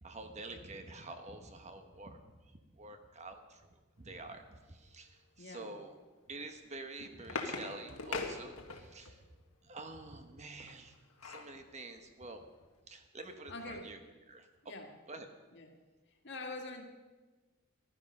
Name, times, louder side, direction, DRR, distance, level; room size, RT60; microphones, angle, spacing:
voice 1, 0.0-2.2 2.7-5.9 6.3-9.2 9.6-10.9 11.2-12.4 12.9-14.0 14.3-14.5 15.1-15.3, right 2 dB, 30° right, 6 dB, 1.0 m, -48 dB
voice 2, 5.4-5.8 13.2-13.9 14.6-15.0 15.5-15.7 16.2-16.8, left 2 dB, 55° left, 3 dB, 1.9 m, -45 dB
sound 1, 6.7-9.1 10.7-11.6 12.1-12.2 12.4-12.7, left 4 dB, 80° left, 1.5 m, -41 dB
15.5 x 12.5 x 5.4 m, 1.3 s
head